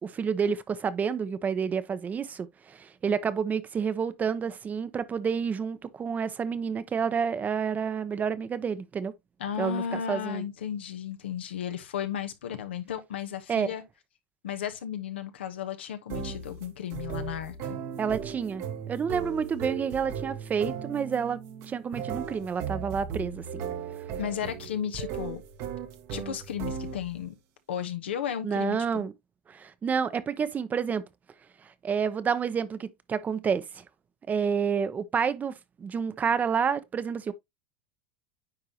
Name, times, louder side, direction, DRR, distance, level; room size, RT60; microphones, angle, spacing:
voice 1, 0.0-9.1 9.6-10.4 13.5-13.7 18.0-21.4 21.7-23.6 28.4-29.1 29.5-31.1 31.8-33.8 34.3-37.3, right 6 dB, 25° right, 0.7 m, -29 dB
voice 2, 9.4-13.8 14.4-17.8 24.2-25.4 26.1-27.3 27.7-29.0, left 9 dB, 85° left, 1.1 m, -34 dB
sound 1, 16.1-27.3, right 7 dB, 55° right, 1.1 m, -37 dB
9.7 x 3.8 x 2.9 m
hypercardioid pair, 95°, 6 cm